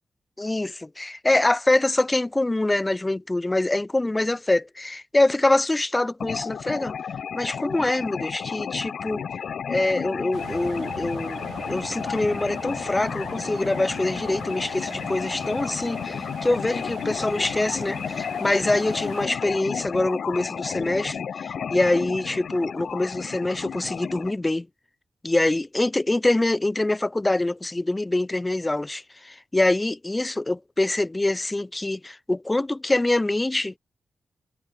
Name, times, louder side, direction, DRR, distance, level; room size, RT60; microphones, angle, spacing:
voice 1, 0.4-6.9 7.3-9.2 9.7-11.4 11.7-24.7 25.2-33.8, left 2 dB, 25° left, 1.0 m, -24 dB
sound 1, 6.2-24.3, left 7 dB, 75° left, 0.5 m, -32 dB
sound 2, 10.3-19.2, right 7 dB, 75° right, 3.3 m, -41 dB
cardioid pair, 50°, 0 cm